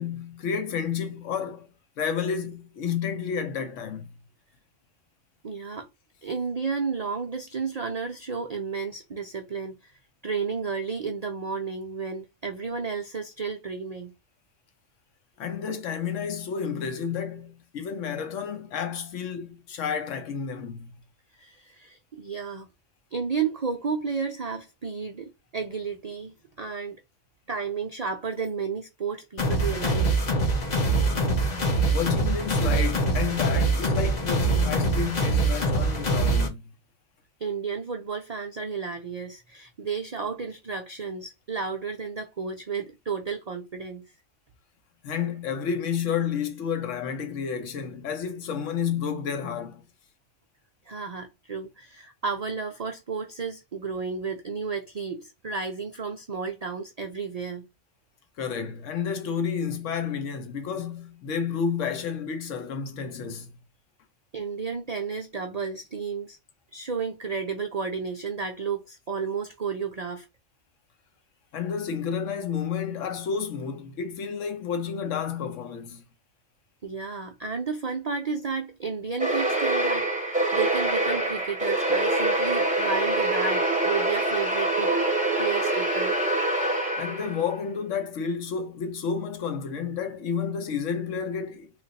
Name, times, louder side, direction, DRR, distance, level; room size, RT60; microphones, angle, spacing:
voice 1, 0.0-1.7 2.0-4.1 15.4-20.9 31.9-36.7 45.0-49.8 58.4-63.5 71.5-76.0 87.0-91.7, left 7 dB, 75° left, 1.0 m, -30 dB
voice 2, 5.4-5.9 6.2-9.9 10.2-14.1 21.4-22.7 23.1-27.0 27.5-30.3 37.4-44.0 50.9-57.6 64.3-66.4 66.7-70.3 76.8-84.9 85.4-86.2, right 5 dB, 75° right, 0.3 m, -32 dB
sound 1, 29.4-36.5, right 2 dB, 40° left, 0.7 m, -24 dB
sound 2, 79.2-87.5, right 2 dB, 10° right, 0.6 m, -25 dB
3.1 x 2.5 x 4.0 m
omnidirectional pair, 1.3 m